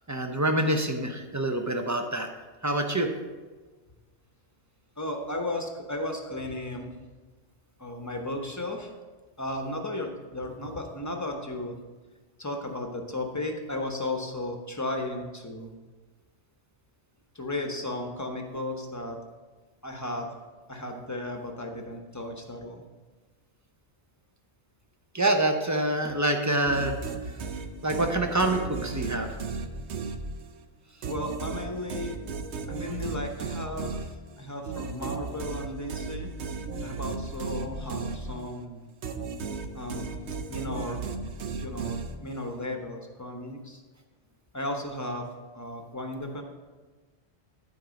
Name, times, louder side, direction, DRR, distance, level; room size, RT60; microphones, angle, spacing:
voice 1, 0.1-2.3 2.6-3.1 25.1-27.0 27.8-29.4, right 1 dB, 20° right, 4 dB, 0.6 m, -26 dB
voice 2, 5.0-6.9 7.8-8.9 9.4-11.8 12.4-15.7 17.3-19.2 19.8-20.3 20.7-22.8 31.0-32.2 32.7-36.3 36.8-38.9 39.7-40.1 40.5-41.0 41.5-43.8 44.5-45.3 45.5-46.4, left 1 dB, 15° left, 3 dB, 0.9 m, -35 dB
sound 1, 26.6-30.6 31.0-38.6 39.0-42.5, right 4 dB, 75° right, 1.0 m, -35 dB
12.0 x 4.6 x 5.2 m, 1.3 s
omnidirectional pair, 1.1 m